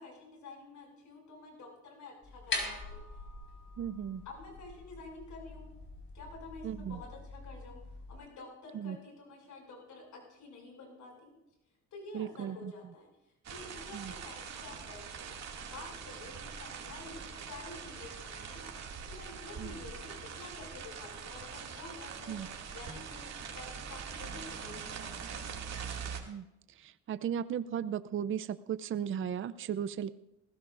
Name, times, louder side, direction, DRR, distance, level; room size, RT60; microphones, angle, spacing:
voice 1, 0.0-3.0 4.2-5.7 6.1-7.8 8.1-11.3 11.9-13.1 13.5-15.3 15.7-18.6 19.1-23.3 23.5-25.6, left 3 dB, 75° left, 0 dB, 6.6 m, -49 dB
sound 1, 2.2-8.2, left 3 dB, 40° left, 4.8 m, -43 dB
voice 2, 3.8-4.2 6.6-7.0 8.7-9.0 12.1-12.7 13.9-14.1 19.6-19.7 22.3-22.5 26.3-26.4 26.8-30.1, right 9 dB, 45° right, 14 dB, 0.5 m, -36 dB
sound 2, 13.4-26.2, right 6 dB, 60° right, 2.4 m, -43 dB
20.0 x 16.0 x 2.6 m, 0.88 s
cardioid pair, 90°, 30 cm